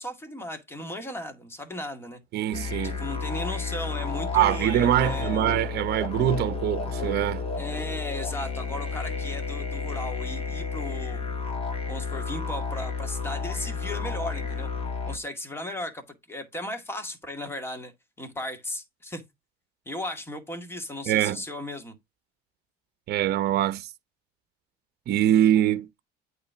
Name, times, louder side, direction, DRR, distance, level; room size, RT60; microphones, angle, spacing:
voice 1, 0.0-2.2 2.8-5.5 7.6-11.3 11.9-14.7 15.1-17.9 18.2-19.2 19.9-22.0, left 1 dB, 10° left, 2.0 m, -36 dB
voice 2, 2.3-3.1 4.3-7.5 21.1-21.4 23.1-23.9 25.1-26.0, right 12 dB, 50° right, 0.9 m, -23 dB
sound 1, 2.5-15.2, left 5 dB, 25° left, 2.0 m, -31 dB
8.6 x 3.3 x 5.6 m
cardioid pair, 115°, 21 cm